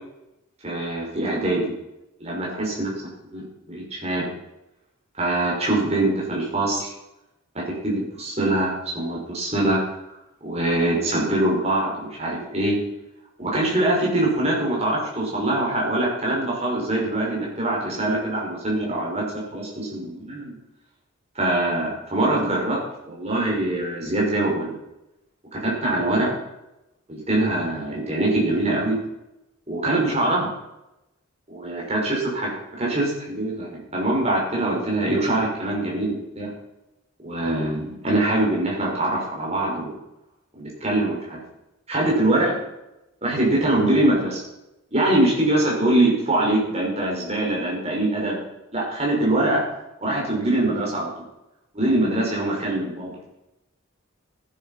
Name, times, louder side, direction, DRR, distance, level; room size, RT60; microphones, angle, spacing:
voice 1, 0.6-1.7 2.2-2.9 3.3-4.3 5.2-6.9 7.5-9.8 10.4-12.8 13.4-19.2 19.5-20.6 21.3-22.8 23.1-24.7 25.5-26.3 27.1-29.0 29.7-30.5 31.5-32.5 32.8-36.5 37.2-39.9 40.6-41.4 41.9-42.5 43.2-44.4 44.9-48.4 48.7-49.6 50.0-51.1 51.7-53.1, right 1 dB, 30° right, -3 dB, 6.0 m, -23 dB
15.0 x 10.5 x 5.9 m, 0.92 s
head